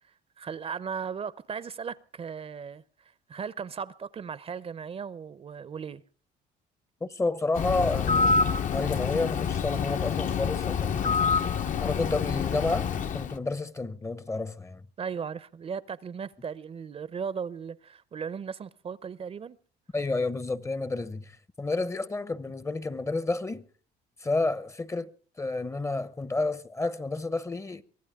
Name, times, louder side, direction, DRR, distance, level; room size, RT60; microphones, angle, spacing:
voice 1, 0.4-6.0 15.0-19.6, right 6 dB, 35° right, 0.7 m, -37 dB
voice 2, 7.0-8.4 8.7-11.2 11.8-14.8 19.9-23.6 24.2-25.1 25.4-27.8, left 3 dB, 15° left, 0.8 m, -30 dB
Bird, 7.5-13.4, left 5 dB, 50° left, 1.0 m, -27 dB
24.0 x 16.0 x 3.6 m
cardioid pair, 110°, 17 cm